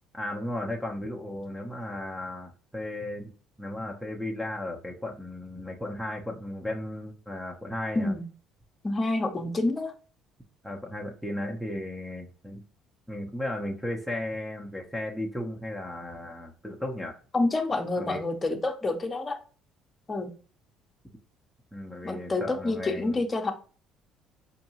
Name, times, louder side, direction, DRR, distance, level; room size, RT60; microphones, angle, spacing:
voice 1, 0.1-3.3 3.6-8.1 10.6-12.6 13.1-17.2 18.0-18.2 21.7-23.2, left 1 dB, 5° right, 1 dB, 0.8 m, -35 dB
voice 2, 8.8-9.9 17.3-19.4 20.1-20.3 22.0-23.5, left 2 dB, 25° left, 6 dB, 0.8 m, -28 dB
4.5 x 2.7 x 2.9 m, 0.39 s
supercardioid pair, 70°, 0 cm